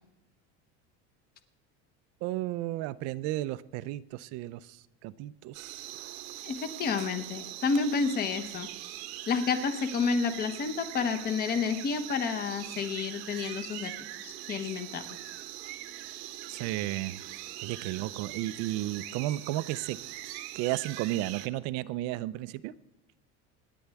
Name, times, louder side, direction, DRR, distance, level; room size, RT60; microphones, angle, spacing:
voice 1, 2.2-4.6 5.0-5.8 16.5-17.2 17.6-20.0 20.6-22.7, right 16 dB, 50° right, 17 dB, 0.5 m, -33 dB
sound 1, 5.5-21.5, right 14 dB, 80° right, 1.1 m, -42 dB
voice 2, 6.4-8.7 9.3-13.9 14.2-15.0, left 5 dB, 30° left, 10 dB, 1.0 m, -30 dB
27.0 x 10.0 x 3.5 m, 0.94 s
cardioid pair, 160°, 32 cm